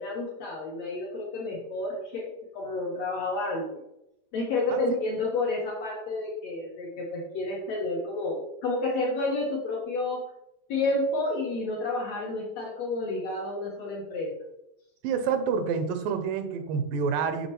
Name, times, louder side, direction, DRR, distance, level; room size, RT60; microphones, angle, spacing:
voice 1, 0.0-3.8 4.3-10.2 10.7-14.3, left 2 dB, 70° left, -2 dB, 1.6 m, -30 dB
voice 2, 15.0-17.5, right 6 dB, 80° right, 9 dB, 2.3 m, -28 dB
8.1 x 4.2 x 3.0 m, 0.86 s
omnidirectional pair, 3.9 m